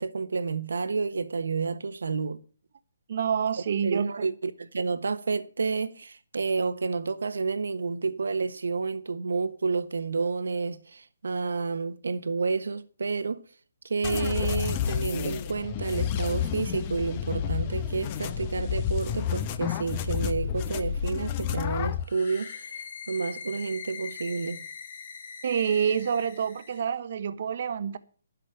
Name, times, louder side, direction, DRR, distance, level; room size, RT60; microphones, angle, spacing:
voice 1, 0.0-2.4 3.8-13.4 13.8-24.6, right 4 dB, 80° right, 1.2 m, -30 dB
voice 2, 3.1-4.3 25.4-28.0, right 7 dB, 55° right, 1.1 m, -27 dB
sound 1, 14.0-22.0, left 9 dB, 30° left, 0.9 m, -30 dB
sound 2, 22.0-26.8, left 6 dB, 55° left, 2.8 m, -42 dB
12.0 x 6.4 x 9.0 m
hypercardioid pair, 155°, 0 cm